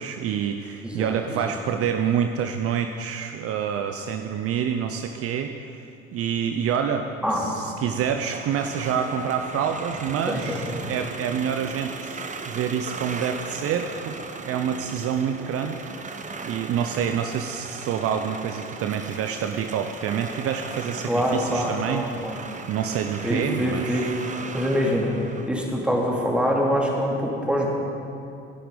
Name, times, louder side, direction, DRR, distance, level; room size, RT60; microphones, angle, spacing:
voice 1, 0.0-5.5 6.1-15.8 16.0-24.2, right 8 dB, 50° right, 6 dB, 0.7 m, -27 dB
voice 2, 0.8-1.4 7.2-7.5 10.3-10.6 21.0-22.4 23.2-24.1 24.5-25.2 25.5-27.7, equal, 5° right, -3 dB, 3.0 m, -25 dB
sound 1, 7.9-25.5, right 4 dB, 25° right, 1.0 m, -37 dB
18.5 x 10.0 x 4.0 m, 2.6 s
hypercardioid pair, 65°, 30 cm